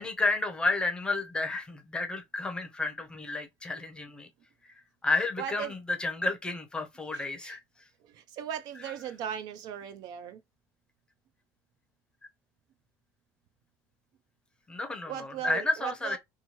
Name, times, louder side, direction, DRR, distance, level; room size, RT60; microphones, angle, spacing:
voice 1, 0.0-4.3 5.0-7.6 14.7-16.2, left 3 dB, 10° left, 0.6 m, -31 dB
voice 2, 5.4-5.7 7.1-7.6 8.0-10.4 15.1-16.2, right 9 dB, 55° right, 0.4 m, -38 dB
3.0 x 2.2 x 2.8 m
cardioid pair, 155°, 8 cm